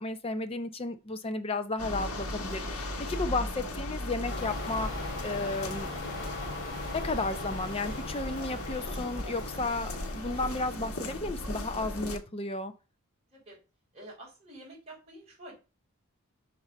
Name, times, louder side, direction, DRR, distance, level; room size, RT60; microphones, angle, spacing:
voice 1, 0.0-5.9 6.9-12.7, left 2 dB, 25° left, 8 dB, 0.6 m, -33 dB
sound 1, 1.8-12.2, left 1 dB, 85° left, 1.1 m, -37 dB
sound 2, 4.3-11.3, left 3 dB, 55° left, 2.5 m, -40 dB
voice 2, 13.9-15.5, right 1 dB, 30° right, -4 dB, 3.5 m, -48 dB
5.5 x 4.7 x 5.0 m, 0.32 s
head